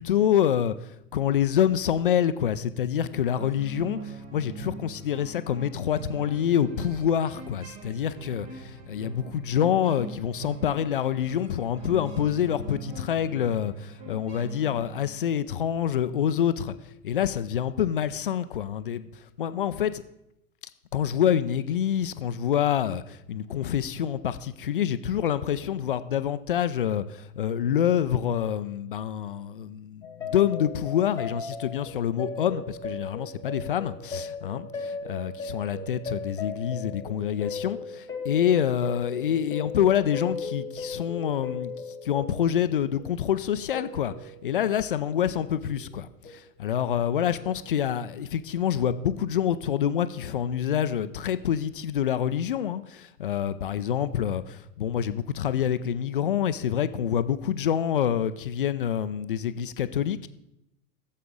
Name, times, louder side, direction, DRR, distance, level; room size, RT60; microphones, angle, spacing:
voice 1, 0.0-16.7 17.0-19.1 19.4-20.0 20.9-41.7 42.0-60.3, left 9 dB, 35° left, 0.4 m, -27 dB
sound 1, 3.4-15.6, right 3 dB, 40° right, 1.7 m, -42 dB
sound 2, 30.0-44.8 45.4-46.0 46.2-46.4 47.4-47.6, left 4 dB, 5° left, 1.5 m, -37 dB
14.0 x 7.4 x 3.8 m
figure-of-eight pair, 105°, 47 cm